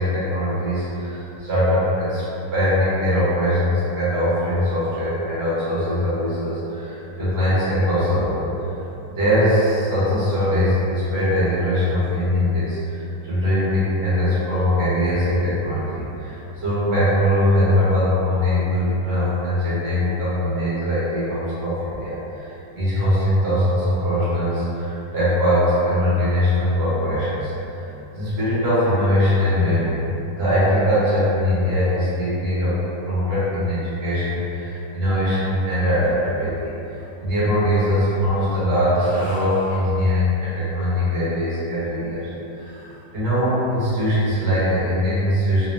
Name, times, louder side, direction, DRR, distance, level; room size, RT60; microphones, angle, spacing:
voice 1, 0.0-2.2 2.5-8.4 9.1-27.8 28.1-30.0 30.3-32.8 33.0-45.7, equal, 40° right, -11 dB, 1.4 m, -21 dB
4.1 x 2.3 x 3.1 m, 3.0 s
omnidirectional pair, 1.9 m